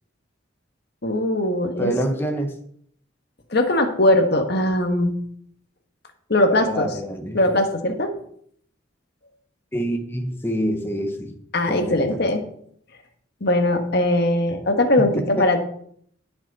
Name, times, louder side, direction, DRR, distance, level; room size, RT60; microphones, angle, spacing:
voice 1, 1.0-1.9 3.5-5.1 6.3-6.9 7.3-8.1 11.5-12.4 13.4-15.6, left 1 dB, 55° left, 5 dB, 1.4 m, -20 dB
voice 2, 1.8-2.5 6.5-7.4 9.7-11.3 11.7-12.2 15.4-15.5, equal, 10° left, 4 dB, 1.0 m, -26 dB
17.5 x 6.1 x 4.2 m, 0.65 s
head